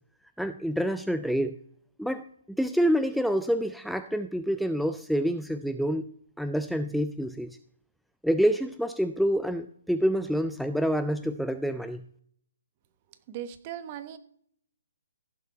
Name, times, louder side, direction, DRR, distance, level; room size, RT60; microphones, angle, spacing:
voice 1, 0.4-1.6 2.0-6.0 6.4-7.6 8.2-12.0, equal, ahead, 10 dB, 0.3 m, -27 dB
voice 2, 13.3-14.2, right 10 dB, 35° right, 12 dB, 1.0 m, -38 dB
15.5 x 7.0 x 4.3 m, 0.64 s
hypercardioid pair, 150°, 0 cm